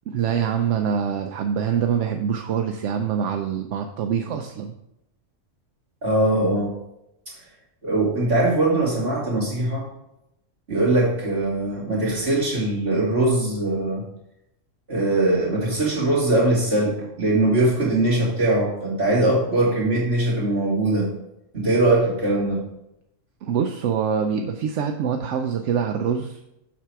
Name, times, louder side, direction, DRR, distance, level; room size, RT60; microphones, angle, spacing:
voice 1, 0.1-4.7 23.4-26.4, right 7 dB, 75° right, 5 dB, 0.9 m, -25 dB
voice 2, 6.0-6.7 7.3-7.4 7.8-9.9 10.7-14.0 14.9-21.1 21.5-22.6, right 2 dB, 50° right, -6 dB, 2.8 m, -21 dB
7.4 x 6.1 x 4.6 m, 0.85 s
omnidirectional pair, 1.3 m